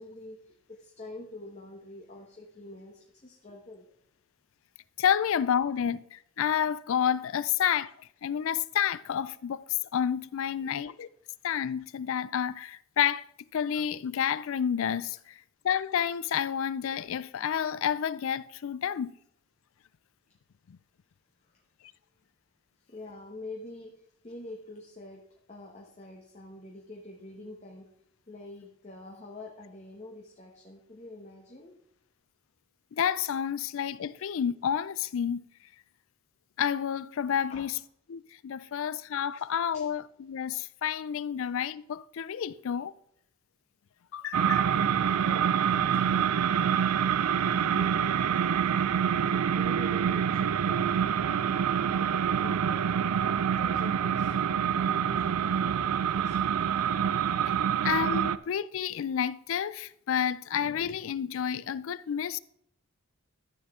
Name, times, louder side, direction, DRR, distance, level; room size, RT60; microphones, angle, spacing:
voice 1, 0.0-3.9 10.6-10.7 21.4-21.5 22.9-23.9 24.2-25.2 25.5-27.9 28.3-31.7 37.5-37.7 39.7-39.8 45.1-46.8 47.3-48.2 49.3-52.9 53.2-56.4, left 2 dB, 30° left, 1.2 m, -46 dB
voice 2, 5.0-7.9 8.2-9.6 9.9-11.1 11.4-13.2 13.5-15.2 15.6-19.1 20.7-20.8 33.0-35.4 36.6-37.8 38.1-42.9 44.1-44.7 57.8-62.4, left 8 dB, 60° left, 0.4 m, -30 dB
sound 1, 44.3-58.4, right 8 dB, 85° right, 0.4 m, -26 dB
12.5 x 7.3 x 3.7 m
head